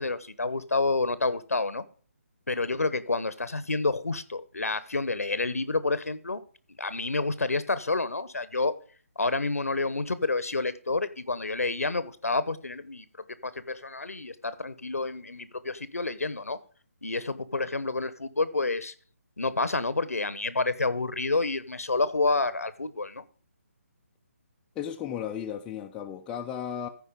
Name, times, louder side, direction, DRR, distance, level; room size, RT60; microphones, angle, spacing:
voice 1, 0.0-1.8 2.5-6.4 6.8-8.7 9.2-13.1 13.4-16.6 17.0-18.9 19.4-23.2, left 3 dB, 85° left, 0.9 m, -29 dB
voice 2, 24.8-26.9, left 9 dB, 10° left, 0.4 m, -34 dB
14.5 x 4.9 x 5.1 m
figure-of-eight pair, 150°, 8 cm